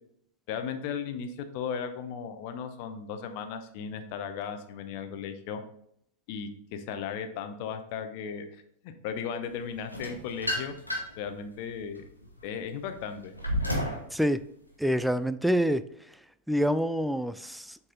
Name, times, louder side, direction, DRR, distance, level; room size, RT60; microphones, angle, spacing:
voice 1, 0.5-5.6 6.3-8.5 8.8-10.7 11.2-12.0 12.4-13.3, left 7 dB, 45° left, 8 dB, 0.8 m, -36 dB
sound 1, 9.9-11.3 11.8-14.1, equal, 90° left, 1.3 m, -32 dB
voice 2, 14.8-15.8 16.5-17.8, equal, ahead, 13 dB, 0.3 m, -26 dB
7.4 x 4.1 x 3.8 m, 0.72 s
figure-of-eight pair, 90°, 0 cm